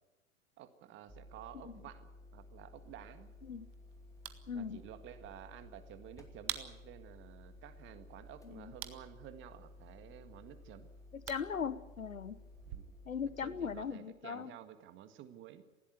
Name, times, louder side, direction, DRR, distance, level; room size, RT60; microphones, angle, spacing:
voice 1, 0.6-3.3 4.5-10.9 12.7-13.0 13.2-15.6, right 11 dB, 30° right, 10 dB, 1.8 m, -52 dB
sound 1, 1.1-13.9, left 2 dB, 10° left, 2.5 m, -56 dB
sound 2, 2.8-12.8, right 13 dB, 45° right, 1.8 m, -51 dB
voice 2, 4.5-4.8 8.5-8.7 11.3-12.4 13.1-14.5, left 6 dB, 80° left, 16 dB, 1.2 m, -39 dB
19.5 x 16.0 x 9.5 m, 1.0 s
figure-of-eight pair, 100°, 40 cm